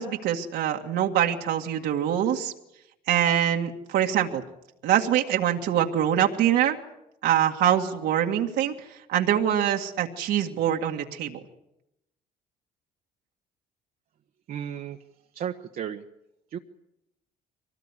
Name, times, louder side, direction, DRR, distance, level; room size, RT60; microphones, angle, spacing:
voice 1, 0.0-2.5 3.1-4.4 4.8-6.8 7.2-11.4, right 10 dB, 80° right, 1 dB, 2.0 m, -24 dB
voice 2, 14.5-15.0 15.3-16.0 16.5-16.6, right 9 dB, 55° right, 3 dB, 1.2 m, -33 dB
23.5 x 18.5 x 9.8 m, 0.85 s
cardioid pair, 110°, 17 cm